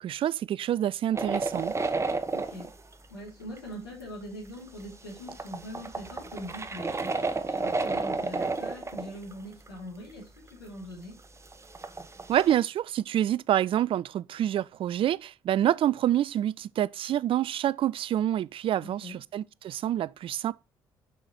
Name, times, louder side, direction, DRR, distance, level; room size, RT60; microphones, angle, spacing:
voice 1, 0.0-1.7 12.3-20.5, right 11 dB, 45° right, 0.4 m, -27 dB
sound 1, 1.1-2.9 3.6-3.7 4.8-9.3 9.7-9.8 11.5-12.6, right 3 dB, 20° right, 0.9 m, -32 dB
voice 2, 2.3-2.7 3.1-11.2 18.8-19.2, equal, 80° left, 3.3 m, -42 dB
6.3 x 5.7 x 4.6 m
figure-of-eight pair, 45°, 12 cm